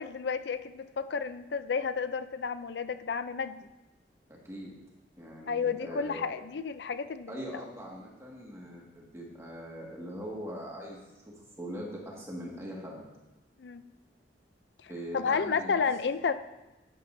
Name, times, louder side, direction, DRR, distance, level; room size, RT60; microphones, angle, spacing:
voice 1, 0.0-3.6 5.5-7.3 13.6-13.8 14.8-16.4, left 5 dB, 70° left, 12 dB, 0.5 m, -31 dB
voice 2, 4.3-4.7 5.2-6.2 7.3-13.0 14.9-15.8, equal, 15° right, -3 dB, 1.8 m, -41 dB
11.0 x 9.3 x 2.7 m, 1.0 s
head